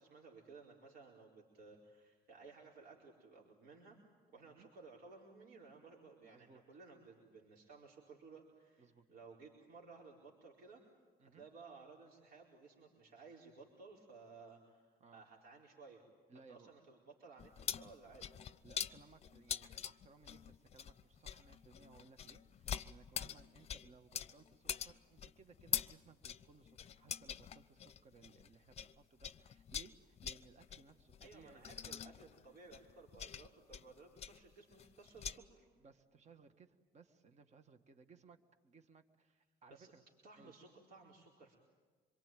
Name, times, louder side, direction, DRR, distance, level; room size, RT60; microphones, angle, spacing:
voice 1, 0.0-4.0 4.3-10.8 11.2-16.0 16.5-18.4 31.2-35.7 39.7-39.9 40.2-41.6, right 4 dB, 65° right, -2 dB, 4.4 m, -58 dB
voice 2, 6.2-6.6 8.8-9.1 11.2-11.4 15.0-15.2 16.3-16.7 18.6-31.7 35.8-38.4 38.6-40.0 40.4-40.5, right 4 dB, 40° right, 8 dB, 1.7 m, -63 dB
sound 1, 17.4-28.9 29.2-35.4, left 8 dB, 40° left, 0.7 m, -45 dB
26.0 x 23.0 x 9.2 m, 1.4 s
cardioid pair, 110°, 17 cm